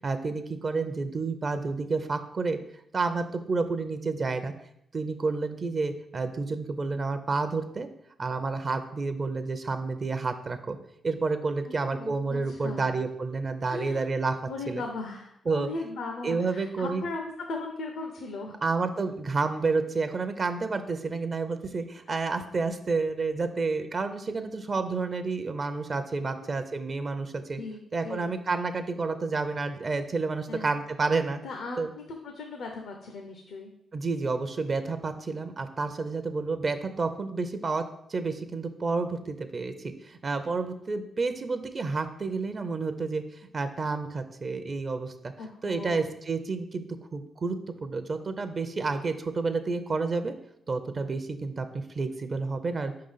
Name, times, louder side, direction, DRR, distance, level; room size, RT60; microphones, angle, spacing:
voice 1, 0.0-2.6 2.9-4.5 4.9-7.9 8.2-10.8 11.0-14.4 14.7-14.8 15.5-15.7 16.2-17.0 18.6-27.6 27.9-31.4 31.8-31.9 33.9-37.8 38.1-45.3 45.6-46.8 47.1-47.6 47.8-50.3 50.7-52.9, right 4 dB, 40° right, 9 dB, 0.5 m, -30 dB
voice 2, 11.7-12.9 13.7-14.1 14.4-18.6 26.2-26.6 27.6-28.3 30.5-30.7 31.4-33.7 45.4-46.0, left 3 dB, 80° left, 3 dB, 0.7 m, -38 dB
4.9 x 3.8 x 5.5 m, 0.77 s
cardioid pair, 80°, 0 cm